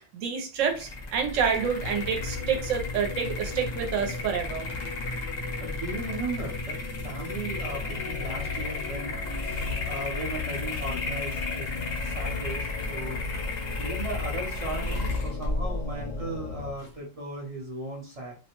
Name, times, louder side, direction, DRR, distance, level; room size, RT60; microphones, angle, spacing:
voice 1, 0.0-4.7, right 7 dB, 75° right, 4 dB, 1.0 m, -28 dB
sound 1, 0.6-16.9, left 3 dB, 50° left, 0.6 m, -34 dB
sound 2, 1.8-16.7, left 4 dB, 80° left, 1.0 m, -38 dB
voice 2, 5.6-6.8 7.0-11.7 12.0-13.2 13.8-18.3, right 2 dB, 40° right, -3 dB, 0.6 m, -37 dB
2.4 x 2.1 x 2.9 m, 0.34 s
omnidirectional pair, 1.3 m